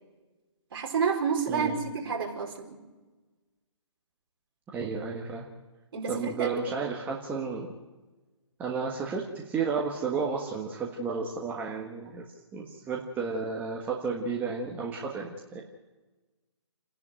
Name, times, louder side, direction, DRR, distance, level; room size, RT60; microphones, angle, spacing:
voice 1, 0.7-2.8 5.9-6.8, right 6 dB, 50° right, 0 dB, 4.6 m, -30 dB
voice 2, 4.7-5.5 6.1-7.7 8.6-12.2 12.5-15.6, right 5 dB, 10° right, -1 dB, 1.5 m, -32 dB
29.5 x 11.0 x 9.2 m, 1.2 s
hypercardioid pair, 155°, 16 cm